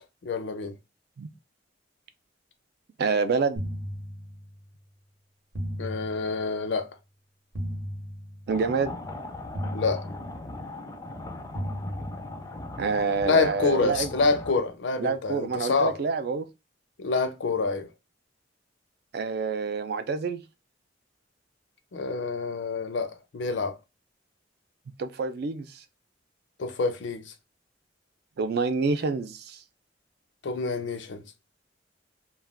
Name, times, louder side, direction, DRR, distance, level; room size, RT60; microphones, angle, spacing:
voice 1, 0.2-0.7 5.8-6.9 9.7-10.0 13.3-16.0 17.0-17.9 21.9-23.8 26.6-27.3 30.4-31.2, left 4 dB, 75° left, 0.5 m, -27 dB
voice 2, 3.0-3.6 8.5-9.0 12.8-14.1 15.0-16.5 19.1-20.4 25.0-25.8 28.4-29.6, right 4 dB, 60° right, 0.4 m, -27 dB
sound 1, 3.6-4.7 5.5-6.7 7.5-8.7 9.5-10.7 11.5-12.7, equal, 75° right, 0.8 m, -36 dB
sound 2, 8.5-14.6, left 2 dB, 15° left, 0.4 m, -39 dB
2.3 x 2.2 x 3.3 m
head